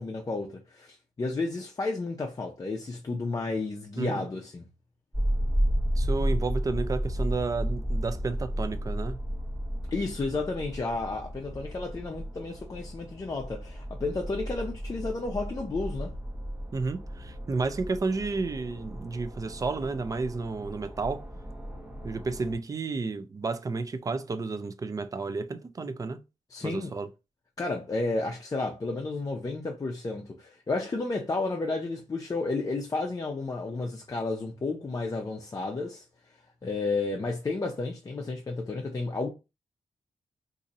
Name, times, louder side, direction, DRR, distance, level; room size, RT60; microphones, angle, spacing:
voice 1, 0.0-4.7 9.9-16.1 26.5-26.9 27.6-36.0 36.6-39.3, left 3 dB, 30° left, 0.5 m, -32 dB
sound 1, 5.1-22.6, equal, 15° right, 0.8 m, -33 dB
voice 2, 5.9-9.2 16.7-21.2 22.0-26.2 26.6-27.1, right 3 dB, 30° right, 0.4 m, -31 dB
2.6 x 2.6 x 4.0 m
wide cardioid pair, 125°, 11 cm